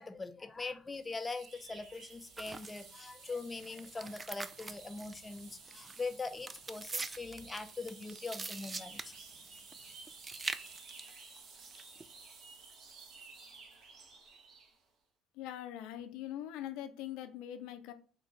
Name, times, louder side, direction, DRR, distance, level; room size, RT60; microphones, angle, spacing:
voice 1, 0.0-9.2, left 3 dB, 20° left, 0.6 m, -42 dB
sound 1, 0.9-14.8, right 4 dB, 60° right, 0.9 m, -54 dB
sound 2, 2.4-2.9 3.6-5.4 5.7-6.0 6.5-9.7 10.0-11.0 11.6-12.0, right 3 dB, 25° right, 0.3 m, -42 dB
voice 2, 15.3-17.9, left 11 dB, 75° left, 0.5 m, -42 dB
4.4 x 2.4 x 3.0 m
hypercardioid pair, 70°, 0 cm